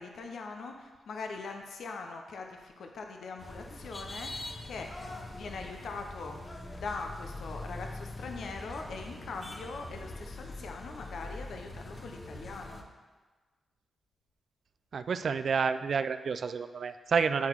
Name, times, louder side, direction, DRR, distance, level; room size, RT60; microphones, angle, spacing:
voice 1, 0.0-4.9 5.3-6.4 6.7-12.8, left 4 dB, 75° left, 3 dB, 0.6 m, -41 dB
In the Taxi, 3.4-12.8, left 2 dB, 35° left, 0.9 m, -43 dB
voice 2, 14.9-17.5, right 5 dB, 65° right, 11 dB, 0.3 m, -29 dB
9.4 x 3.9 x 4.6 m, 1.4 s
cardioid pair, 65°, 0 cm